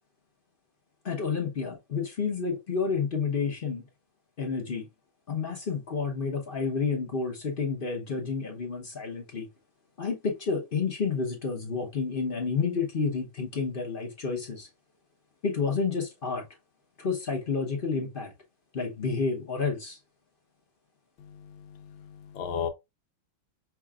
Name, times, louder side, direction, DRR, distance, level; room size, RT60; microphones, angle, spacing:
voice 1, 1.0-3.8 4.4-4.8 5.3-9.5 10.0-14.7 15.4-16.4 17.0-18.3 18.7-20.0, left 5 dB, 40° left, 0.8 m, -30 dB
voice 2, 21.2-22.7, left 7 dB, 90° left, 1.6 m, -36 dB
5.8 x 3.0 x 2.3 m
omnidirectional pair, 2.2 m